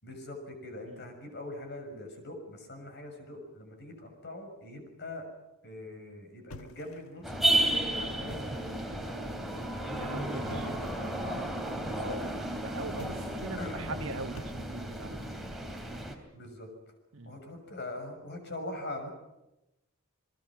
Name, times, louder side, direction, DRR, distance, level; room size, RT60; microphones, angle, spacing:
voice 1, 0.0-5.3 5.6-9.3 9.8-11.4 11.9-12.4 13.6-14.3 16.3-16.7 17.2-19.1, left 1 dB, 55° left, 5 dB, 6.3 m, -42 dB
sound 1, 6.5-7.3 8.2-8.9 10.5-10.9 12.9-13.6 14.3-15.1, left 1 dB, 75° left, 1.5 m, -49 dB
sound 2, 7.2-16.2, right 1 dB, ahead, 3.2 m, -33 dB
voice 2, 10.0-10.7 11.9-12.3 12.6-15.4 17.1-17.4, right 3 dB, 70° right, 7 dB, 1.6 m, -41 dB
29.5 x 20.5 x 6.1 m, 0.93 s
head